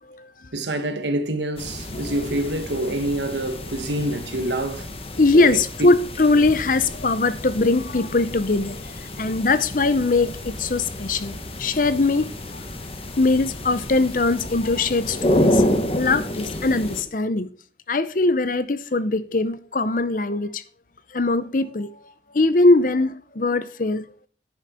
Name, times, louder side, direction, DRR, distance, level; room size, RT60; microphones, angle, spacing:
voice 1, 0.5-4.9 5.3-5.6, right 1 dB, 85° right, 1.5 m, -26 dB
sound 1, 1.6-17.0, left 1 dB, 35° left, 1.3 m, -29 dB
voice 2, 5.2-11.3 11.6-12.6 13.2-17.5 17.9-20.6 21.1-21.9 22.3-24.3, left 3 dB, 50° left, 0.7 m, -21 dB
10.5 x 9.8 x 4.4 m
head